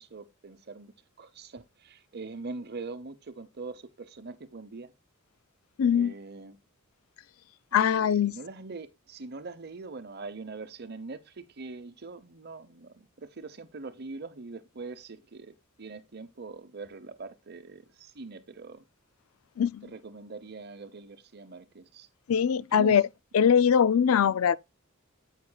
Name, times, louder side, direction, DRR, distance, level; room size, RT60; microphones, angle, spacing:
voice 1, 0.0-4.9 5.9-6.6 7.7-18.8 19.8-22.1 22.7-23.0 24.2-24.4, right 3 dB, 50° right, 0.8 m, -43 dB
voice 2, 5.8-6.1 7.7-8.3 19.6-19.9 22.3-23.0 23.3-24.6, left 7 dB, 85° left, 0.4 m, -22 dB
9.7 x 8.2 x 2.3 m
head